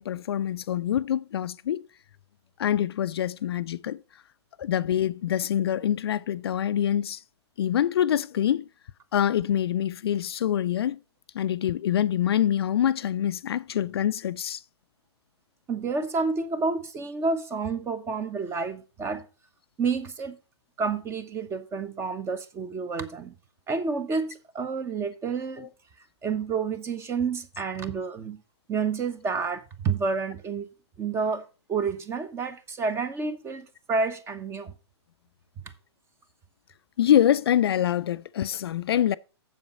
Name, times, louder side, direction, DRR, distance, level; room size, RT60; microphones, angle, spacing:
voice 1, 0.0-1.9 2.6-4.0 4.6-7.2 7.6-8.7 9.1-11.0 11.3-14.6 37.0-39.2, left 10 dB, 60° left, 0.4 m, -25 dB
voice 2, 15.7-19.2 19.8-20.4 20.8-23.3 23.7-25.7 26.2-28.4 28.7-30.7 31.0-31.4 31.7-34.7, right 4 dB, 15° right, 1.0 m, -29 dB
7.6 x 7.3 x 5.2 m
hypercardioid pair, 125°, 15 cm